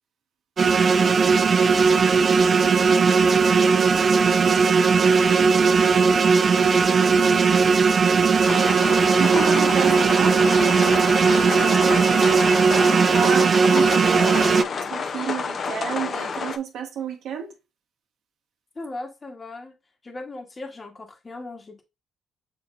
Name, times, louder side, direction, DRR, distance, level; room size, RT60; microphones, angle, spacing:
sound 1, 0.6-14.6, right 5 dB, 40° right, 0.4 m, -18 dB
sound 2, 8.4-16.6, left 5 dB, 50° left, 0.5 m, -29 dB
voice 1, 9.2-10.4 12.9-17.5, right 8 dB, 75° right, 1.2 m, -30 dB
voice 2, 11.5-12.4 18.7-19.7 20.0-21.8, left 2 dB, 25° left, 1.2 m, -36 dB
7.4 x 2.7 x 2.5 m
cardioid pair, 90°, 0 cm